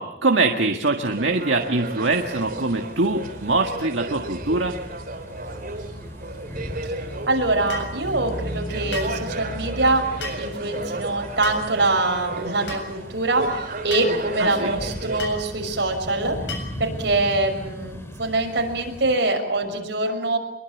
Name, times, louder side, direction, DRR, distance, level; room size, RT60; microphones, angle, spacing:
voice 1, 0.0-4.8 14.4-14.8, right 3 dB, 85° right, 3 dB, 1.8 m, -23 dB
sound 1, 1.0-15.2, right 2 dB, 50° right, 3.0 m, -34 dB
sound 2, 2.1-19.2, equal, 15° left, 3.3 m, -37 dB
voice 2, 7.3-16.4 16.8-20.4, right 2 dB, 70° right, 3 dB, 6.1 m, -24 dB
sound 3, 7.7-7.9 8.9-9.2 10.2-10.5 11.4-11.7 12.7-12.9 13.9-14.1 15.2-15.4 16.5-16.8, left 2 dB, 80° left, 7.6 m, -33 dB
25.5 x 22.5 x 8.4 m, 0.84 s
head